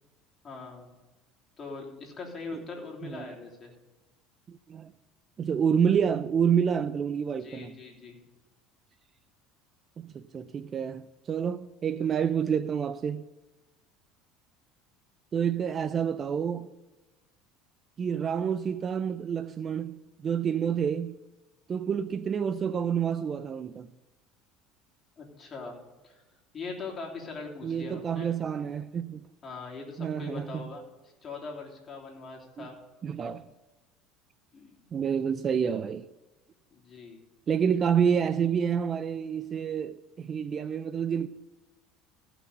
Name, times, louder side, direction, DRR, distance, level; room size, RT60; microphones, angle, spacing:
voice 1, 0.4-0.9 1.6-3.7 7.4-8.2 25.2-25.7 26.0-26.2 26.5-28.3 29.4-32.8 34.5-34.8 36.7-37.2, left 4 dB, 25° left, 3.2 m, -41 dB
voice 2, 4.5-4.9 5.4-7.7 10.0-13.3 15.3-16.7 18.0-21.1 21.7-23.9 27.6-29.2 30.0-30.7 32.6-32.7 33.0-33.5 34.9-36.1 37.5-41.3, right 7 dB, 30° right, 0.4 m, -28 dB
15.5 x 6.0 x 6.8 m
supercardioid pair, 125°, 0 cm